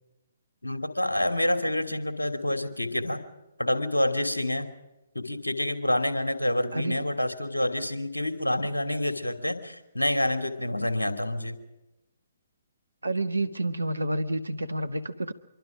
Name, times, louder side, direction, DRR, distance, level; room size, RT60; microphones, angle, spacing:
voice 1, 0.6-3.2 3.6-4.7 5.1-11.6, left 1 dB, 80° left, 8 dB, 2.8 m, -27 dB
voice 2, 6.7-7.0 13.0-15.3, right 1 dB, 75° right, 10 dB, 1.6 m, -29 dB
25.5 x 23.5 x 5.1 m, 0.98 s
figure-of-eight pair, 130°, 0 cm